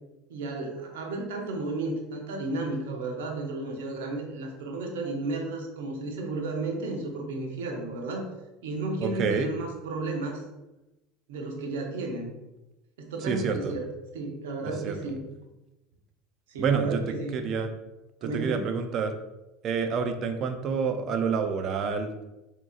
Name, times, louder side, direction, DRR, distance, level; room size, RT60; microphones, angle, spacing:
voice 1, 0.3-8.3 8.6-10.4 11.3-12.3 13.0-13.9 14.1-15.2 16.5-17.4 18.2-18.7, right 2 dB, 75° right, 1 dB, 0.8 m, -33 dB
voice 2, 9.0-9.5 13.2-13.7 14.8-14.9 16.6-17.7 18.2-19.1 19.6-22.1, right 5 dB, 45° right, 7 dB, 0.5 m, -28 dB
3.8 x 3.0 x 2.4 m, 0.99 s
hypercardioid pair, 80°, 0 cm